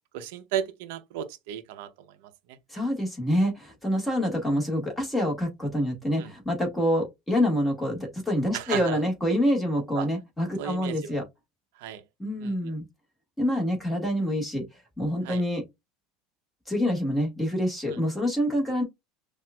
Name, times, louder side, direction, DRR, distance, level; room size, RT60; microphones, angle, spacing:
voice 1, 0.1-2.6 6.2-6.3 8.5-9.0 9.9-10.1 10.6-11.2 11.8-12.0 12.4-12.5 15.2-15.4 17.9-18.0, right 10 dB, 75° right, 0.6 m, -34 dB
voice 2, 2.7-11.2 12.2-12.8 13.4-14.6 15.0-15.6 16.7-18.8, equal, 5° left, 1.5 m, -26 dB
5.8 x 2.4 x 2.3 m
cardioid pair, 155°, 0 cm